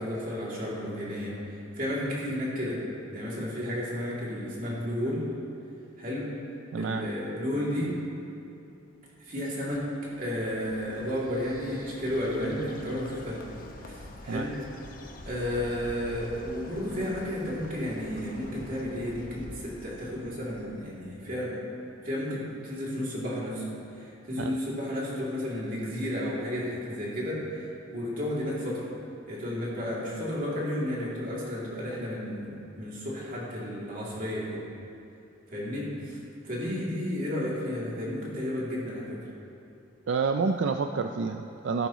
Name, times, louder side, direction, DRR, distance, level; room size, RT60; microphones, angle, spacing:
voice 1, 0.0-2.8 3.1-5.2 6.0-6.3 6.8-7.9 9.2-9.8 10.2-13.4 13.8-14.5 15.2-21.6 22.0-23.6 24.0-28.8 29.3-34.6 35.5-36.2 36.4-39.2, left 1 dB, 50° right, -6 dB, 2.8 m, -32 dB
voice 2, 6.7-7.1 14.3-14.5 24.4-24.6 40.1-41.9, right 4 dB, 80° right, 5 dB, 0.4 m, -28 dB
Bird, 9.7-21.1, left 1 dB, 50° left, 0.9 m, -46 dB
14.5 x 11.5 x 3.0 m, 2.7 s
head